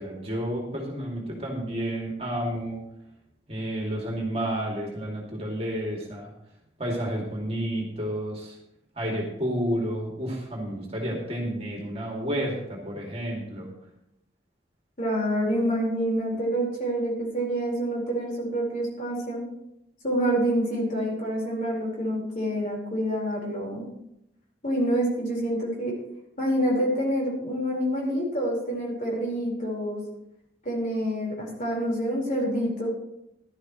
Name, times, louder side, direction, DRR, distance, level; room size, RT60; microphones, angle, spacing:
voice 1, 0.0-2.8 3.5-6.3 6.8-8.6 9.0-13.7, equal, 30° right, -1 dB, 2.5 m, -30 dB
voice 2, 15.0-19.4 20.0-23.9 24.6-25.9 26.4-30.0 30.6-32.9, equal, 40° left, -2 dB, 4.7 m, -27 dB
16.5 x 12.0 x 3.2 m, 0.83 s
head